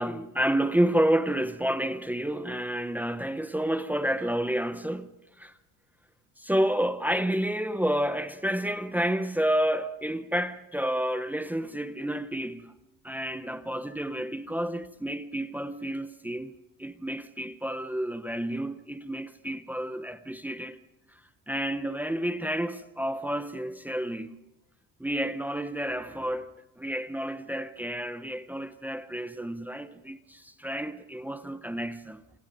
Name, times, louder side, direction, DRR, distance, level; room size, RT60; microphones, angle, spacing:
voice 1, 0.0-5.1 5.4-5.5 6.4-12.7 13.0-20.8 21.1-21.2 21.5-24.4 25.0-32.2, right 1 dB, 5° right, 0.7 m, -30 dB
27.5 x 26.5 x 5.3 m
cardioid pair, 170°, 37 cm